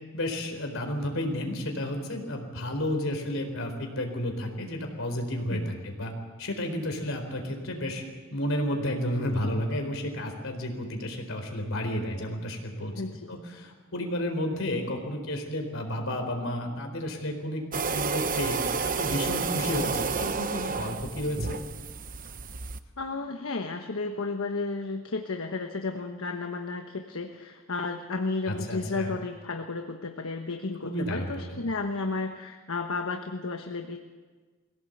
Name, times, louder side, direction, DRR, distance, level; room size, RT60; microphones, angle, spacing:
voice 1, 0.1-6.1 6.4-8.0 8.3-12.9 13.3-21.6 28.5-29.1 30.8-31.6, left 1 dB, 70° left, 4 dB, 4.1 m, -32 dB
voice 2, 12.9-13.3 23.0-34.0, left 3 dB, 85° left, 5 dB, 1.2 m, -33 dB
sound 1, 17.7-22.8, right 5 dB, 40° right, 0.9 m, -30 dB
23.0 x 17.0 x 8.0 m, 1.4 s
head